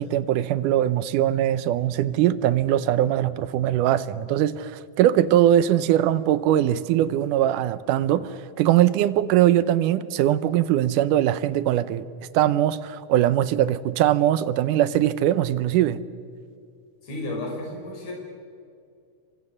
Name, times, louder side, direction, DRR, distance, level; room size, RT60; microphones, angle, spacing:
voice 1, 0.0-12.1 12.3-16.0, right 12 dB, 90° right, 2.4 m, -21 dB
voice 2, 17.0-18.1, left 2 dB, 60° left, 6.6 m, -32 dB
28.5 x 24.5 x 6.6 m
omnidirectional pair, 3.6 m